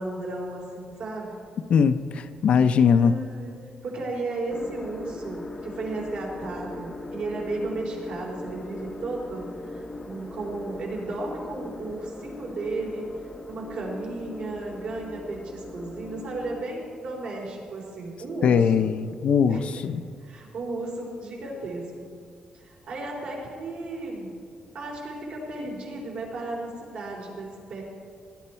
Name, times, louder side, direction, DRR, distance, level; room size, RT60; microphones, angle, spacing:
voice 1, 0.0-1.4 3.0-3.5 3.8-13.1 13.5-18.9 19.5-19.7 20.2-22.1 22.5-24.3 24.7-27.8, right 2 dB, 65° right, -2 dB, 3.7 m, -34 dB
voice 2, 1.7-3.1 18.4-20.0, left 6 dB, 60° left, 10 dB, 0.6 m, -21 dB
sound 1, 4.5-16.6, left 2 dB, 20° left, 0.7 m, -40 dB
18.0 x 11.0 x 4.4 m, 2.1 s
cardioid pair, 145°, 2 cm